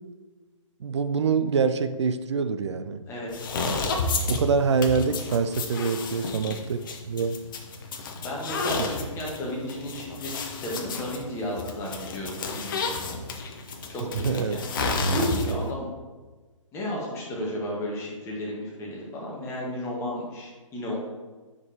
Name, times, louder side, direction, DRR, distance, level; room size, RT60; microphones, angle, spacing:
voice 1, 0.8-3.0 3.7-3.8 4.3-6.8 7.1-7.4 8.8-8.9 14.2-14.6 15.5-15.6, right 5 dB, 55° right, 10 dB, 0.4 m, -25 dB
sound 1, 3.3-15.7, left 3 dB, 40° left, 0.8 m, -31 dB
voice 2, 8.2-13.2 13.9-14.6 15.1-15.9 16.7-21.0, left 1 dB, 15° left, -3 dB, 1.5 m, -33 dB
8.0 x 5.3 x 2.9 m, 1.3 s
figure-of-eight pair, 130°, 17 cm